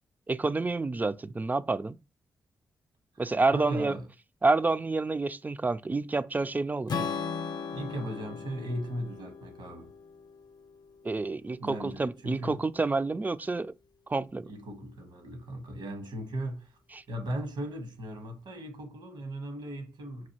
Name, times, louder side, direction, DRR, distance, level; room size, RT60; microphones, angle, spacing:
voice 1, 0.3-2.0 3.2-4.0 4.4-7.1 11.0-13.7 14.1-14.5, right 3 dB, 20° right, 0.3 m, -28 dB
voice 2, 3.5-4.1 7.7-9.9 11.6-12.6 14.4-16.8 17.1-20.3, right 1 dB, 80° right, 1.3 m, -37 dB
Strum, 6.9-11.1, left 5 dB, 60° left, 0.6 m, -37 dB
6.1 x 2.5 x 2.8 m
cardioid pair, 60°, 8 cm